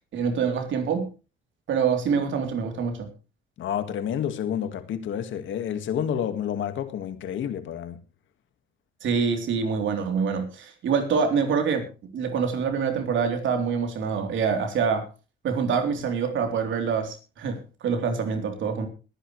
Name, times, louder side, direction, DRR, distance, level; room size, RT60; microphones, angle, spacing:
voice 1, 0.1-1.1 1.7-3.1 9.0-11.9 12.1-15.1 15.4-18.9, right 6 dB, 75° right, 3.5 m, -25 dB
voice 2, 3.6-8.0, left 9 dB, 75° left, 1.9 m, -29 dB
22.0 x 10.0 x 3.2 m
cardioid pair, 90°, 20 cm